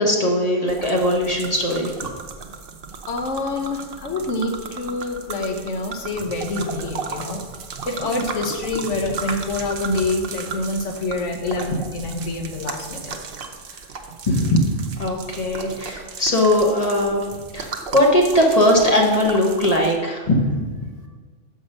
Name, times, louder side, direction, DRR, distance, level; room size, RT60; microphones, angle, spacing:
voice 1, 0.0-1.9 14.3-14.7 15.0-17.2 17.5-20.6, left 1 dB, 30° left, -1 dB, 1.1 m, -19 dB
sound 1, 0.7-20.0, right 5 dB, 55° right, 0.9 m, -35 dB
voice 2, 3.1-7.4 7.8-13.1, left 2 dB, 70° left, 4 dB, 1.3 m, -26 dB
6.5 x 5.3 x 6.5 m, 1.5 s
omnidirectional pair, 1.3 m